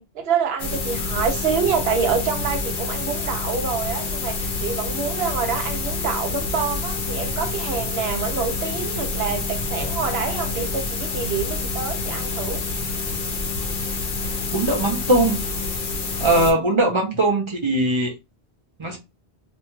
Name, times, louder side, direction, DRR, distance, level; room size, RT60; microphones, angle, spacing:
voice 1, 0.0-12.6, right 6 dB, 70° right, 0.9 m, -27 dB
sound 1, 0.6-16.5, left 3 dB, 60° left, 0.8 m, -27 dB
voice 2, 14.5-15.4 16.2-18.2 18.8-19.0, right 2 dB, 35° right, 0.5 m, -20 dB
2.6 x 2.2 x 2.9 m
omnidirectional pair, 1.1 m